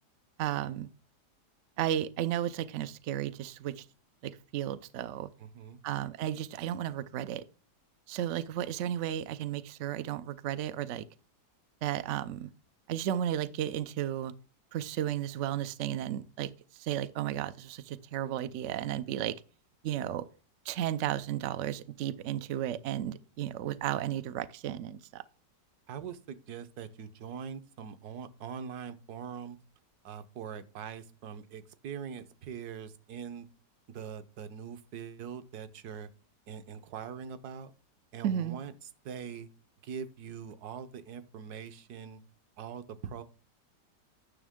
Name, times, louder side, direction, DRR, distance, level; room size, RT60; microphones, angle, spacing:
voice 1, 0.4-0.9 1.8-3.8 4.2-5.3 5.8-7.4 8.1-11.0 11.8-12.5 12.9-14.3 14.7-16.5 16.8-19.4 19.8-20.2 20.7-25.2 38.2-38.6, right 11 dB, 90° right, 0.6 m, -33 dB
voice 2, 5.4-5.8 25.9-29.6 30.0-33.5 33.9-36.1 36.5-37.7 38.1-38.7 39.0-39.5 39.8-42.2 42.6-43.2, right 7 dB, 70° right, 1.2 m, -42 dB
10.0 x 6.1 x 3.6 m
omnidirectional pair, 1.9 m